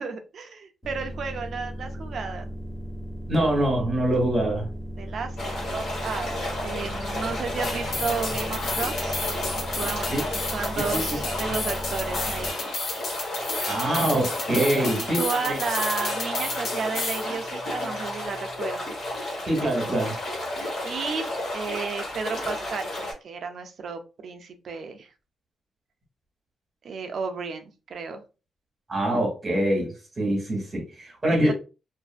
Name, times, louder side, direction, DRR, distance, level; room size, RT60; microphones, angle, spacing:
voice 1, 0.0-2.5 5.0-5.4 5.7-9.2 9.7-10.1 10.5-12.5 14.8-14.9 15.2-19.1 20.8-25.1 26.8-28.2 31.3-31.5, right 5 dB, 55° right, 0.5 m, -33 dB
sound 1, 0.8-12.5, equal, 10° left, 1.1 m, -36 dB
voice 2, 3.3-4.7 10.1-10.2 10.7-11.3 13.7-15.6 19.4-20.1 28.9-31.5, right 1 dB, 25° right, 1.1 m, -25 dB
sound 2, 5.4-23.1, left 1 dB, 55° left, 1.3 m, -32 dB
sound 3, 7.6-17.3, left 3 dB, 75° left, 0.8 m, -32 dB
2.5 x 2.4 x 2.4 m
wide cardioid pair, 150°, 0 cm